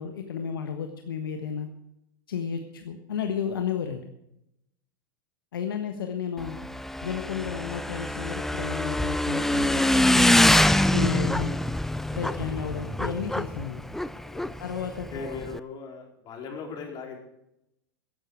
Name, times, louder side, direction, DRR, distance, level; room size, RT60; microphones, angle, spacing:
voice 1, 0.0-1.7 2.3-4.1 5.5-6.6 7.0-10.6 10.9-11.5 11.9-13.9 14.6-15.3, left 7 dB, 75° left, 5 dB, 1.3 m, -32 dB
Motorcycle / Engine, 6.4-15.6, left 1 dB, 5° left, 0.5 m, -24 dB
voice 2, 10.6-10.9 11.3-11.5 12.3-12.6 14.3-14.6 14.9-17.2, left 5 dB, 40° left, 1 dB, 4.5 m, -40 dB
15.0 x 11.5 x 4.8 m, 0.83 s
hypercardioid pair, 95°, 12 cm